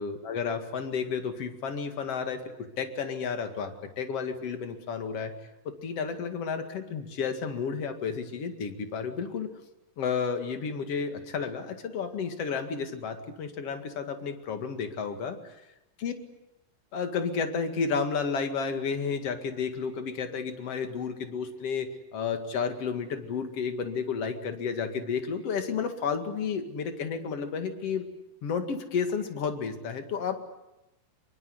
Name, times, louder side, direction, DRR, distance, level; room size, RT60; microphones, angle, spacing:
voice 1, 0.0-2.4 2.8-5.3 5.6-9.5 10.0-15.6 16.0-16.1 16.9-28.0 28.4-30.4, left 5 dB, 50° left, 6 dB, 2.8 m, -32 dB
25.5 x 23.5 x 8.0 m, 0.91 s
omnidirectional pair, 4.0 m